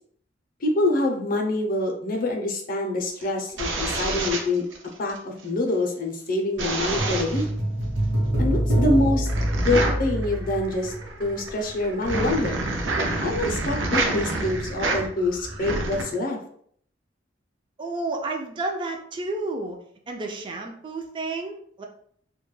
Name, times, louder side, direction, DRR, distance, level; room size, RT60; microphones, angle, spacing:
voice 1, 0.6-4.6 5.0-7.4 8.4-9.3 9.6-10.9 11.2-12.6 13.2-16.4, left 2 dB, 50° left, 2 dB, 0.5 m, -25 dB
sound 1, 3.1-5.2 6.6-7.5 9.2-16.0, right 2 dB, 80° right, 0.5 m, -28 dB
sound 2, 7.0-11.4 11.7-11.8, right 1 dB, 60° right, 0.9 m, -25 dB
voice 2, 17.8-19.8 20.1-21.9, right 2 dB, 25° right, 2 dB, 0.3 m, -31 dB
2.2 x 2.1 x 3.1 m, 0.63 s
head